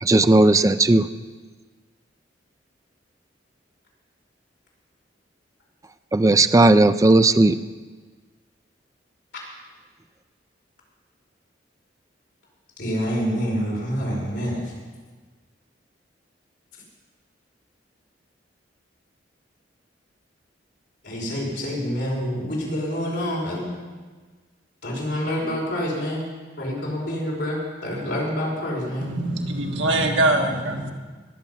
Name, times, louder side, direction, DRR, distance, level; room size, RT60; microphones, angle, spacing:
voice 1, 0.0-1.1 6.1-7.6, right 2 dB, 15° right, 11 dB, 0.4 m, -16 dB
voice 2, 12.8-14.7 21.0-23.7 24.8-26.3 26.6-29.1, equal, 65° left, -4 dB, 5.2 m, -27 dB
voice 3, 29.0-30.9, right 2 dB, 80° right, 2 dB, 1.6 m, -23 dB
21.5 x 7.4 x 5.7 m, 1.4 s
head